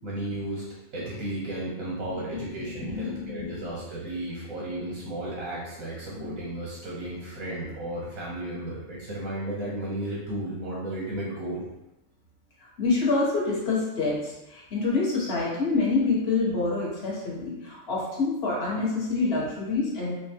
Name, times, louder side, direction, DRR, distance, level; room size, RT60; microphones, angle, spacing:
voice 1, 0.0-11.6, right 1 dB, 90° right, -5 dB, 1.4 m, -34 dB
voice 2, 2.3-3.6 6.1-6.4 12.8-20.1, left 3 dB, 50° left, -5 dB, 1.2 m, -27 dB
5.1 x 2.2 x 2.8 m, 0.95 s
omnidirectional pair, 1.5 m